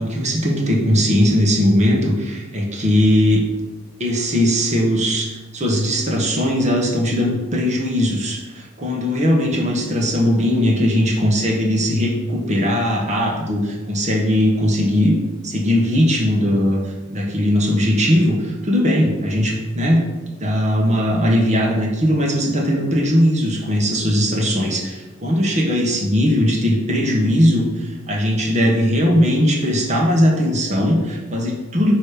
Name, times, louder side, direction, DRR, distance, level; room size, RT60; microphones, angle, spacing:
voice 1, 0.0-3.4 4.0-20.0 20.4-31.9, equal, 35° right, -1 dB, 1.4 m, -19 dB
9.1 x 3.2 x 5.2 m, 1.2 s
head